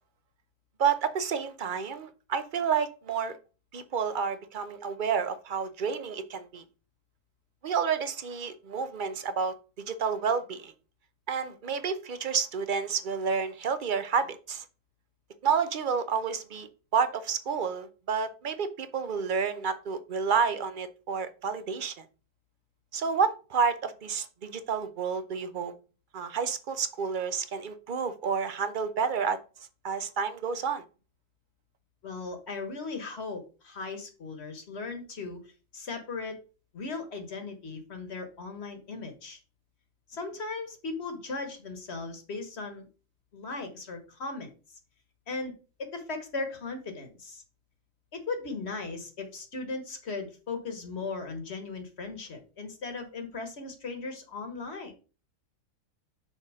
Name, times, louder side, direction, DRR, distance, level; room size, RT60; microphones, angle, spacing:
voice 1, 0.8-3.4 3.7-6.6 7.6-9.5 9.9-10.7 11.3-14.6 15.4-16.7 16.9-22.0 22.9-25.7 26.1-29.4 29.8-30.8, right 6 dB, 45° right, 0.7 m, -30 dB
voice 2, 32.0-36.4 36.7-39.4 40.1-42.9 43.3-44.5 45.3-45.5 45.8-47.4 48.1-54.9, left 3 dB, 50° left, 1.5 m, -37 dB
6.2 x 4.1 x 4.9 m
omnidirectional pair, 1.4 m